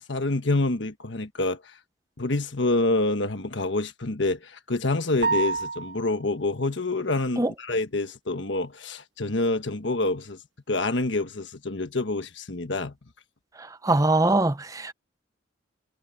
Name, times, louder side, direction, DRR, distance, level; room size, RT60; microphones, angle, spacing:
voice 1, 0.1-1.6 2.2-10.4 10.7-12.9, left 2 dB, 70° left, 1.4 m, -27 dB
sound 1, 5.2-6.3, right 4 dB, 70° right, 1.4 m, -27 dB
voice 2, 13.6-14.9, right 2 dB, 15° right, 0.7 m, -23 dB
head